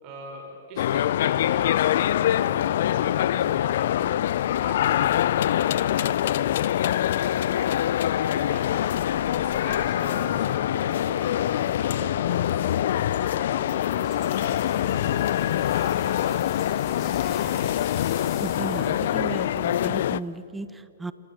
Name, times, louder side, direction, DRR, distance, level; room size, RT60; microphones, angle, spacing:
voice 1, 0.0-4.3 4.6-7.8 8.2-11.4 11.7-15.4 15.7-17.7, right 4 dB, 35° right, 1 dB, 4.8 m, -43 dB
sound 1, 0.8-20.2, left 11 dB, 55° left, 0.5 m, -24 dB
sound 2, 8.9-19.1, left 5 dB, 20° left, 2.3 m, -44 dB
sound 3, 13.7-20.3, left 7 dB, 35° left, 4.2 m, -42 dB
voice 2, 18.4-21.1, right 3 dB, 10° right, 14 dB, 1.0 m, -35 dB
27.5 x 27.5 x 7.2 m, 2.8 s
figure-of-eight pair, 115°, 0 cm